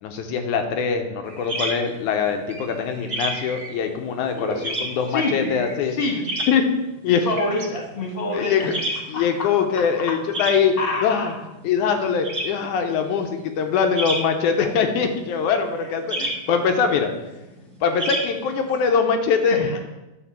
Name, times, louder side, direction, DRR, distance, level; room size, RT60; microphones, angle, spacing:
voice 1, 0.0-6.0 6.5-6.7 7.0-7.2 8.3-8.8 9.1-10.7 11.0-11.3 11.6-17.1 17.8-19.6, left 6 dB, 70° left, 6 dB, 2.1 m, -22 dB
sound 1, 1.3-18.9, right 1 dB, 35° right, 1.2 m, -33 dB
voice 2, 5.1-5.5 5.8-6.5 7.1-8.7 9.1-9.5 9.8-10.2 10.8-11.4 19.5-19.8, left 2 dB, 20° left, 0 dB, 1.5 m, -27 dB
11.5 x 4.5 x 7.4 m, 1.0 s
omnidirectional pair, 4.0 m